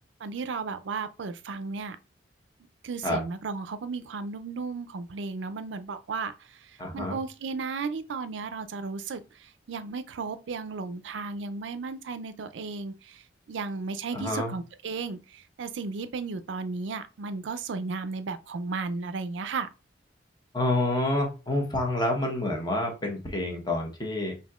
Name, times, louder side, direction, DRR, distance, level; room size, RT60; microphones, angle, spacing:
voice 1, 0.2-2.0 2.8-13.2 13.5-19.7, right 4 dB, 75° right, 0.4 m, -34 dB
voice 2, 6.8-7.2 14.1-14.5 20.5-24.4, left 1 dB, 25° left, 0.9 m, -28 dB
5.3 x 2.7 x 2.3 m
head